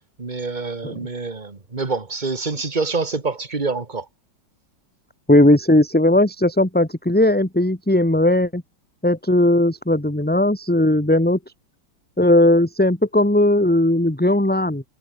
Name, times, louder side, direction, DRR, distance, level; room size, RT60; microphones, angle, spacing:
voice 1, 0.0-4.1, right 4 dB, 25° right, 2.0 m, -26 dB
voice 2, 5.3-8.6 9.0-11.4 12.2-14.8, left 1 dB, 5° left, 1.9 m, -17 dB
omnidirectional pair, 2.1 m